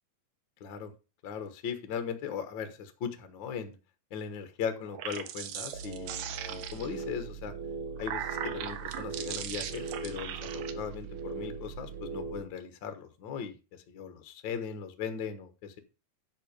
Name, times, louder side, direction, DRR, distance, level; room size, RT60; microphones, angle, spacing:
voice 1, 0.6-0.9 1.2-3.8 4.1-7.5 8.0-15.8, left 7 dB, 85° left, 8 dB, 1.0 m, -38 dB
sound 1, 4.8-7.1 7.7-10.7, right 10 dB, 80° right, 2.6 m, -39 dB
sound 2, 5.7-12.4, right 4 dB, 60° right, 2.8 m, -40 dB
10.0 x 5.9 x 5.1 m, 0.31 s
omnidirectional pair, 4.2 m